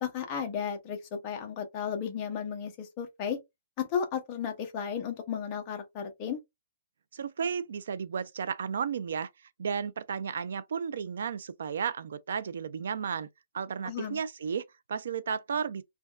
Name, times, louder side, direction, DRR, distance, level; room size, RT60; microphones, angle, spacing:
voice 1, 0.0-3.4 3.8-6.4 13.8-14.2, left 7 dB, 20° left, 0.6 m, -34 dB
voice 2, 7.1-9.3 9.6-13.3 13.5-15.8, right 6 dB, 60° right, 0.4 m, -33 dB
3.3 x 2.2 x 2.3 m
hypercardioid pair, 175°, 0 cm